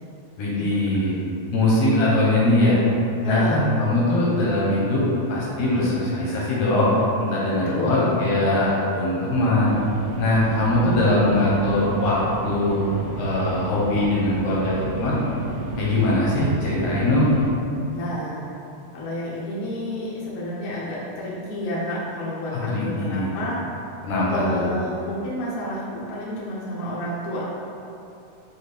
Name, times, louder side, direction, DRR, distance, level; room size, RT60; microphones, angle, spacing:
voice 1, 0.4-1.1 1.5-2.8 3.2-5.0 5.3-9.7 10.2-12.2 12.4-12.8 13.2-15.2 15.8-17.3 22.5-23.3 24.0-24.7, left 1 dB, 75° left, -6 dB, 1.5 m, -21 dB
voice 2, 3.2-3.7 7.5-8.1 17.9-18.4 18.9-23.6 24.3-27.5, left 1 dB, 90° left, -7 dB, 1.2 m, -30 dB
sound 1, 9.6-17.5, right 3 dB, 80° right, 1.9 m, -32 dB
5.8 x 2.3 x 3.3 m, 2.7 s
omnidirectional pair, 3.7 m